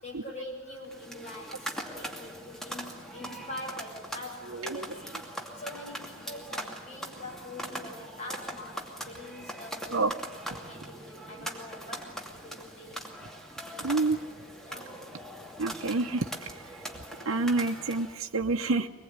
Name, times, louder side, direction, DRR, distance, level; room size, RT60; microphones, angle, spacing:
voice 1, 0.0-5.2 5.6-10.1 10.7-13.0 14.6-15.0, left 1 dB, 35° left, 0 dB, 6.6 m, -44 dB
sound 1, 0.9-18.2, right 1 dB, ahead, 2.6 m, -41 dB
voice 2, 4.5-4.9 9.9-10.1 13.8-14.2 15.6-16.3 17.3-18.9, right 3 dB, 75° right, 4 dB, 1.0 m, -28 dB
24.0 x 20.5 x 9.7 m, 1.2 s
head